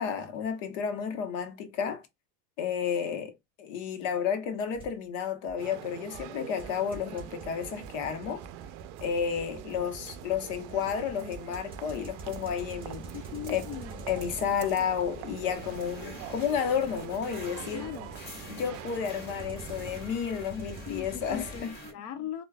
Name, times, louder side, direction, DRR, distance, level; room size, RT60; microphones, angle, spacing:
voice 1, 0.0-2.0 2.6-3.3 3.6-8.4 9.0-13.1 13.5-13.6 14.1-17.9 18.5-21.7, left 7 dB, 80° left, 1.0 m, -31 dB
sound 1, 4.7-4.9 5.5-5.6 6.1-21.6, right 3 dB, 15° right, 1.5 m, -46 dB
sound 2, 5.6-20.4, right 13 dB, 60° right, 0.5 m, -45 dB
voice 2, 13.1-14.1 17.7-18.1 20.9-22.4, left 10 dB, 45° left, 0.5 m, -39 dB
sound 3, 15.5-21.9, left 1 dB, 25° left, 1.8 m, -47 dB
4.6 x 2.4 x 2.3 m
supercardioid pair, 135°, 37 cm